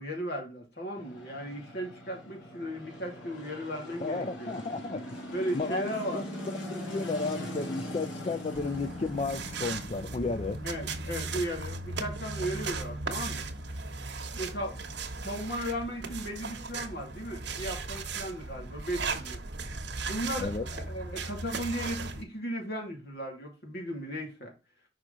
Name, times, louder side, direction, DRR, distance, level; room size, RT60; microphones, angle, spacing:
voice 1, 0.0-4.5 5.3-6.2 10.6-13.4 14.3-14.8 15.2-19.4 20.1-24.5, equal, 55° left, 2.5 m, -36 dB
sound 1, 1.0-15.2, left 1 dB, 80° left, 2.6 m, -42 dB
voice 2, 4.0-5.2 5.5-6.2 6.7-10.6 20.4-20.7, left 3 dB, 30° left, 0.4 m, -33 dB
sound 2, 8.5-22.2, right 3 dB, 65° right, 1.2 m, -37 dB
6.0 x 4.8 x 3.9 m
head